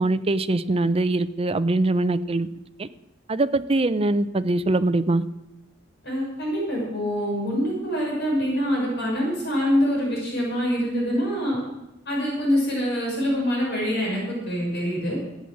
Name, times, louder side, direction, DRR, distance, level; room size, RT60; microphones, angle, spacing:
voice 1, 0.0-2.5 2.8-2.9 3.3-5.2, right 2 dB, 30° right, 13 dB, 0.6 m, -22 dB
voice 2, 6.0-11.6 12.1-15.2, equal, 55° left, -2 dB, 5.7 m, -25 dB
13.0 x 8.6 x 7.6 m, 0.95 s
head